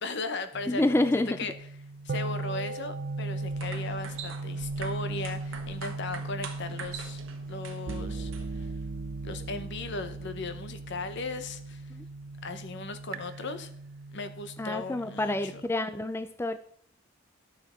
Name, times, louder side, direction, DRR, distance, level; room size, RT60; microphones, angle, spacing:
voice 1, 0.0-1.5 2.0-7.2 7.5-8.7 9.2-11.9 12.4-13.7 14.1-15.6, left 3 dB, 60° left, 9 dB, 0.9 m, -37 dB
sound 1, 0.5-15.6, right 3 dB, 50° right, 0.5 m, -38 dB
voice 2, 0.7-1.4 11.9-12.0 14.6-16.6, left 1 dB, 10° left, 11 dB, 0.3 m, -28 dB
sound 2, 3.3-8.7, right 5 dB, 70° right, 1.2 m, -44 dB
11.5 x 7.0 x 4.3 m, 0.64 s
head